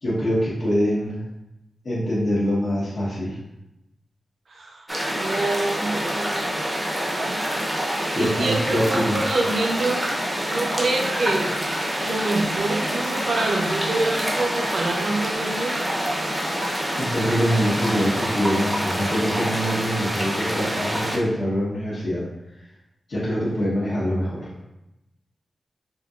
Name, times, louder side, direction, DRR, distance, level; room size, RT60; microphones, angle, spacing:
voice 1, 0.0-1.2 1.8-3.4 8.1-9.4 16.5-22.2 23.1-24.5, equal, 55° left, -11 dB, 0.9 m, -24 dB
voice 2, 4.5-7.4 8.2-10.0 10.5-11.6 12.0-16.0, right 2 dB, 60° right, 1 dB, 0.5 m, -26 dB
sound 1, 4.9-21.2, equal, 10° right, 0.6 m, -26 dB
3.6 x 2.7 x 2.4 m, 0.92 s
wide cardioid pair, 135°, 0 cm